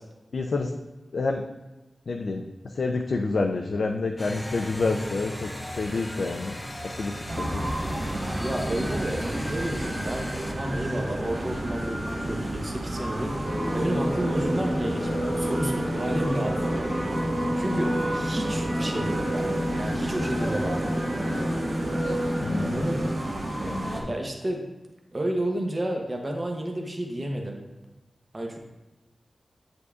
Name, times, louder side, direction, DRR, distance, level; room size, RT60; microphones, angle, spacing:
voice 1, 0.3-0.7 1.1-1.4 2.1-6.6 7.0-7.7 22.4-22.9 23.6-24.1, left 3 dB, 65° left, 2 dB, 0.4 m, -28 dB
sound 1, 4.2-10.5, left 1 dB, 15° left, 0.6 m, -37 dB
sound 2, 7.3-24.0, right 1 dB, 60° right, 1.3 m, -32 dB
voice 2, 8.4-16.8 17.5-21.0 22.6-23.2 24.1-24.6 25.1-27.6 28.3-28.6, right 1 dB, 30° right, 1 dB, 0.7 m, -31 dB
sound 3, 13.4-23.1, equal, 85° right, 2.1 m, -29 dB
7.9 x 5.1 x 2.4 m, 1.0 s
wide cardioid pair, 130°, 0 cm